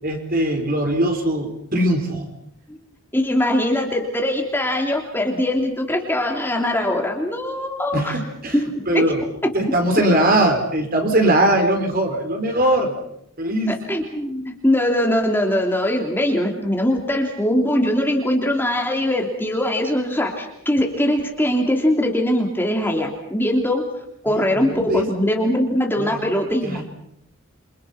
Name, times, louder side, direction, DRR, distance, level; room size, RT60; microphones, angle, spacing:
voice 1, 0.0-2.3 7.9-8.6 8.9-9.3 9.5-12.9 13.4-13.8 24.3-25.1 26.0-26.2 26.6-26.8, right 1 dB, 40° right, 3 dB, 4.7 m, -20 dB
voice 2, 3.1-8.2 8.5-9.0 9.4-9.5 13.9-23.9 24.2-26.8, left 1 dB, 10° left, 1 dB, 3.0 m, -21 dB
28.5 x 25.5 x 5.9 m, 0.75 s
head